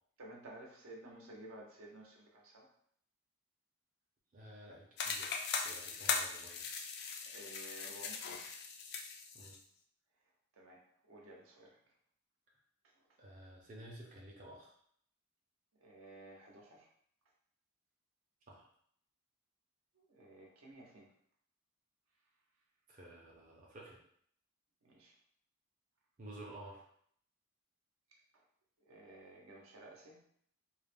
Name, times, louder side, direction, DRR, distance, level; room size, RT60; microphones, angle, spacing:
voice 1, 0.2-2.7 7.2-8.5 10.6-10.8 11.1-11.8 15.8-16.9 20.0-21.1 24.8-25.1 28.9-30.3, right 1 dB, 80° right, -2 dB, 0.7 m, -54 dB
voice 2, 4.3-6.6 8.3-8.4 9.3-9.5 13.2-14.8 18.5-18.7 22.9-24.0 26.2-26.8, right 1 dB, 40° right, -3 dB, 0.5 m, -52 dB
sound 1, 5.0-9.6, left 5 dB, 50° left, 0.3 m, -39 dB
2.3 x 2.0 x 3.3 m, 0.64 s
head